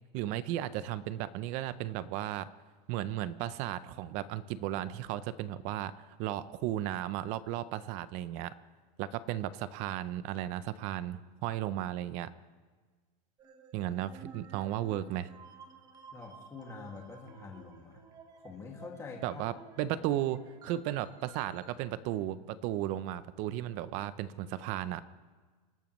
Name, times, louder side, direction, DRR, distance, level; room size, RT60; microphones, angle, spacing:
voice 1, 0.1-2.5 2.9-5.9 6.2-8.5 9.0-12.3 13.7-15.3 19.2-25.0, right 13 dB, 35° right, 15 dB, 0.6 m, -35 dB
sound 1, 13.4-21.7, right 5 dB, 20° right, 1.0 m, -54 dB
voice 2, 16.1-18.1 18.4-19.4 19.8-20.0, left 4 dB, 15° left, -1 dB, 2.1 m, -46 dB
26.0 x 12.0 x 3.1 m, 1.4 s
supercardioid pair, 160°, 20 cm